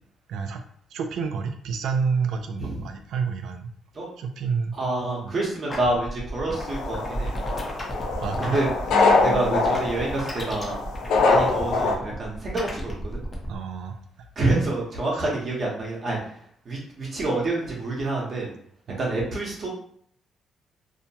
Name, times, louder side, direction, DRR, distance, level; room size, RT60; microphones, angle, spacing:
voice 1, 0.3-0.6 0.9-3.7 4.2-4.8 5.2-5.3 6.5-6.6 8.2-8.6 13.5-14.0 15.1-15.3 18.9-19.0, right 5 dB, 80° right, 6 dB, 0.3 m, -29 dB
voice 2, 4.7-7.3 8.4-8.7 9.2-10.8 11.1-13.2 14.4-16.2 16.6-18.5 19.0-19.7, right 2 dB, 45° right, -4 dB, 0.9 m, -27 dB
sound 1, 5.7-13.6, equal, 20° left, 0.7 m, -35 dB
sound 2, 6.5-12.0, left 3 dB, 85° left, 0.4 m, -24 dB
2.7 x 2.1 x 2.7 m, 0.62 s
cardioid pair, 90°, 0 cm